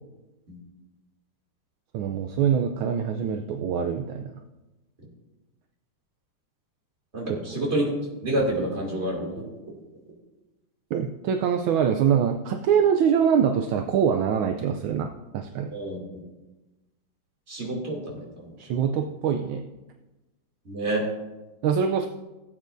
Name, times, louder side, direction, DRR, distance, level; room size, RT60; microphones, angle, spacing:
voice 1, 1.9-4.3 7.3-7.4 10.9-15.1 15.3-15.7 18.6-19.6 21.6-22.1, right 7 dB, 75° right, 4 dB, 1.4 m, -24 dB
voice 2, 7.1-7.9 8.2-9.4 15.7-16.0 17.5-18.5 18.9-19.0 20.6-21.0, right 1 dB, 30° right, -3 dB, 2.9 m, -28 dB
17.5 x 8.5 x 2.6 m, 1.1 s
omnidirectional pair, 2.3 m